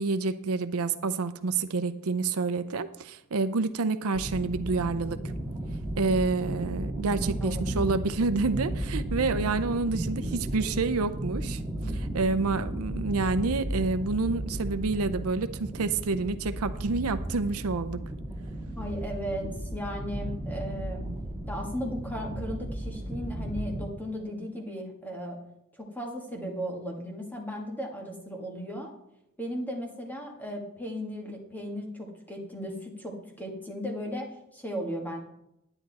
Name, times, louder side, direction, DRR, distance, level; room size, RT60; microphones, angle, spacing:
voice 1, 0.0-5.2 6.0-11.6 11.9-18.0, right 3 dB, 80° right, 11 dB, 0.6 m, -28 dB
sound 1, 4.1-23.8, right 1 dB, 15° right, 1.7 m, -34 dB
voice 2, 7.4-7.7 18.7-21.1 21.5-25.4 25.7-28.9 29.4-35.2, equal, 10° left, 0 dB, 1.8 m, -36 dB
10.0 x 9.9 x 4.1 m, 0.81 s
head